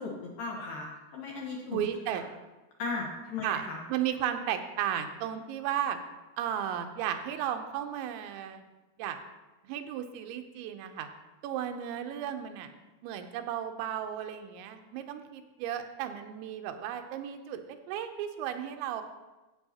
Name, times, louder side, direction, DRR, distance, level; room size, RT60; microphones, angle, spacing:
voice 1, 0.0-1.9 2.8-3.8, left 4 dB, 70° left, -2 dB, 2.2 m, -36 dB
voice 2, 1.7-2.2 3.4-3.6 3.9-6.0 6.4-8.6 9.0-9.2 9.6-11.1 11.4-12.7 13.0-19.0, right 10 dB, 90° right, 7 dB, 3.1 m, -34 dB
13.5 x 8.6 x 2.8 m, 1.1 s
omnidirectional pair, 5.1 m